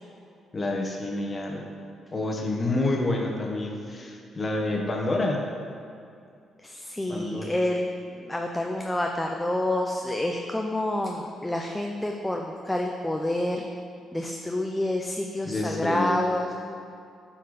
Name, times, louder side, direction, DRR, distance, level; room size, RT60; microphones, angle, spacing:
voice 1, 0.5-1.6 2.1-5.4 7.1-7.5 15.4-16.2, left 2 dB, 30° left, 0 dB, 1.2 m, -28 dB
voice 2, 6.6-13.7 14.1-16.5, left 1 dB, 10° left, 2 dB, 0.5 m, -28 dB
8.0 x 4.5 x 5.0 m, 2.5 s
cardioid pair, 90°, 0 cm